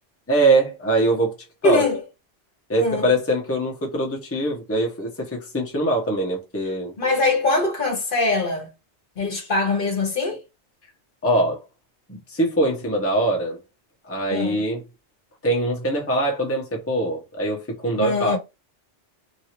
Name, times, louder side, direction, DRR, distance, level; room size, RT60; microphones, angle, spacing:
voice 1, 0.3-1.3 1.6-1.8 2.7-6.9 11.2-11.6 12.1-13.6 14.0-14.8 15.4-18.4, right 1 dB, 15° left, 0.8 m, -22 dB
voice 2, 1.6-2.0 2.8-3.0 7.0-8.7 9.2-10.4 14.3-14.5 18.0-18.4, left 3 dB, 50° left, 1.1 m, -22 dB
3.0 x 2.7 x 2.9 m
omnidirectional pair, 1.2 m